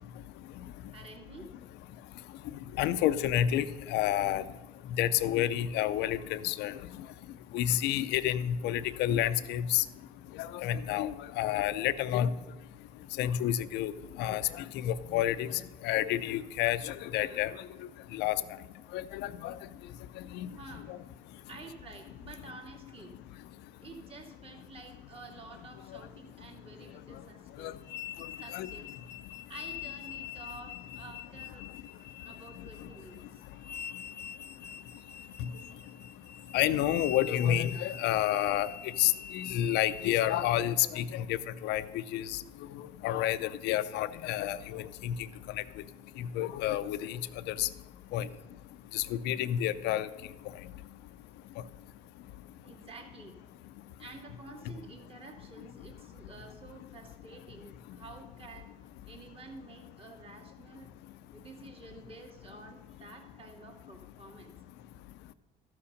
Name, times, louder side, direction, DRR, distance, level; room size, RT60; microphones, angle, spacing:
voice 1, 0.9-1.7 20.5-20.9 21.5-23.2 23.8-27.8 28.4-28.9 29.5-31.8 32.2-33.5 52.6-53.4 54.0-58.7 59.1-60.9 61.3-64.5, right 3 dB, 35° right, 1 dB, 2.1 m, -50 dB
voice 2, 2.8-4.4 5.0-6.7 7.5-9.8 10.4-12.3 13.2-13.9 14.2-15.5 15.8-17.5 18.1-18.4 18.9-19.5 20.3-20.5 27.6-27.7 28.5-28.7 36.5-38.7 39.0-41.4 41.6-41.8 42.1-42.4 42.8-45.1 46.4-47.2 47.5-47.7 48.1-48.3 48.9-50.1, left 12 dB, 85° left, 14 dB, 0.5 m, -29 dB
sound 1, 27.8-40.5, left 8 dB, 15° left, 0.8 m, -45 dB
13.5 x 5.7 x 6.4 m, 1.2 s
cardioid pair, 110°, 17 cm